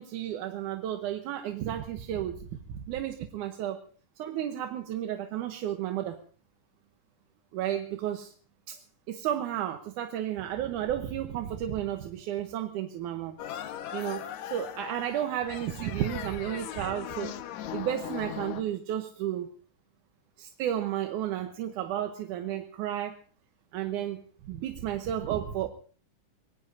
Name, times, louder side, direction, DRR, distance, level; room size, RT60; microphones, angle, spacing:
voice 1, 0.0-3.8 4.2-6.2 7.5-8.3 8.7-8.8 9.1-13.4 13.9-17.3 17.7-19.5 20.4-23.2 23.7-25.7, right 11 dB, 80° right, 6 dB, 2.4 m, -32 dB
sound 1, 13.4-18.6, left 11 dB, 70° left, 2.2 m, -39 dB
25.5 x 19.0 x 2.7 m, 0.42 s
omnidirectional pair, 3.6 m